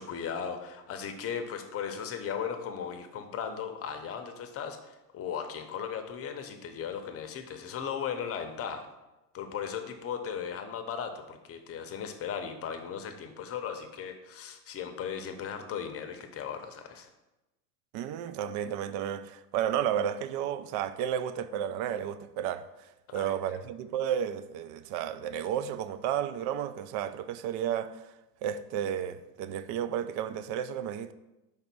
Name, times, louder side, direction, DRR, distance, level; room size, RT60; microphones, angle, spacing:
voice 1, 0.0-8.9 9.3-17.1 23.1-23.4, left 7 dB, 30° left, 0.8 m, -37 dB
voice 2, 17.9-28.1 28.4-31.1, right 9 dB, 40° right, 0.4 m, -32 dB
5.3 x 4.0 x 6.0 m
supercardioid pair, 115°, 47 cm